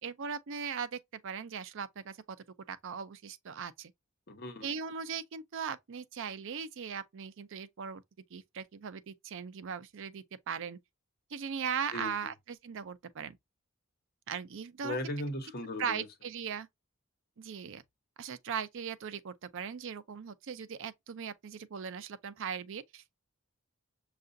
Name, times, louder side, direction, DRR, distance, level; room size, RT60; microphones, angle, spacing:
voice 1, 0.0-2.4 2.7-3.9 4.6-8.0 8.3-10.8 11.3-13.4 14.3-15.0 15.8-16.7 17.4-17.8 18.2-23.2, right 7 dB, 65° right, 0.5 m, -39 dB
voice 2, 4.3-4.7 11.9-12.1 14.8-16.0, left 1 dB, 50° left, 1.1 m, -37 dB
6.6 x 2.4 x 2.5 m
head